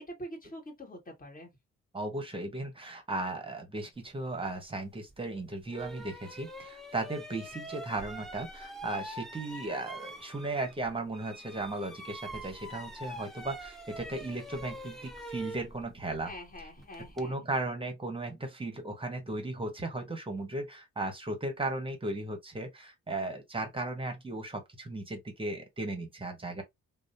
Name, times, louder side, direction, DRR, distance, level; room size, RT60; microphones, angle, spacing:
voice 1, 0.0-1.5 16.2-17.4, equal, 30° left, 1.4 m, -45 dB
voice 2, 1.9-16.3 17.1-26.6, right 2 dB, 15° right, 0.9 m, -36 dB
sound 1, 5.1-5.2 5.7-10.9 11.1-17.3, right 1 dB, ahead, 0.6 m, -44 dB
2.8 x 2.0 x 2.5 m
cardioid pair, 90°, 30 cm